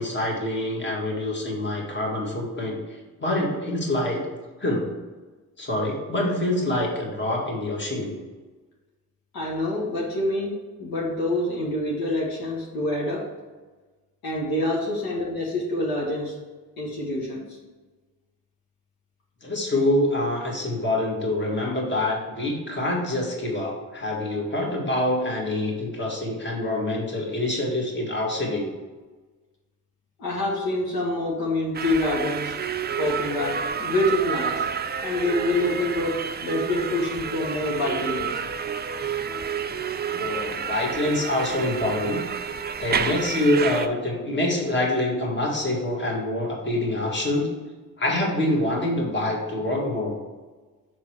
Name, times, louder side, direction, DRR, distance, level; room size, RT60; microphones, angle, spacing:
voice 1, 0.0-2.8 3.2-4.2 4.6-4.9 5.6-8.2 19.4-28.7 40.1-42.2 42.8-47.5 48.0-50.2, left 1 dB, 30° left, -1 dB, 1.9 m, -26 dB
voice 2, 9.3-13.2 14.2-16.3 16.8-17.6 30.2-32.5 33.0-34.7 35.0-38.4, left 1 dB, 70° left, -3 dB, 1.6 m, -26 dB
sound 1, 31.7-43.9, right 7 dB, 25° right, 0.4 m, -29 dB
6.1 x 3.7 x 4.7 m, 1.3 s
supercardioid pair, 60°, 37 cm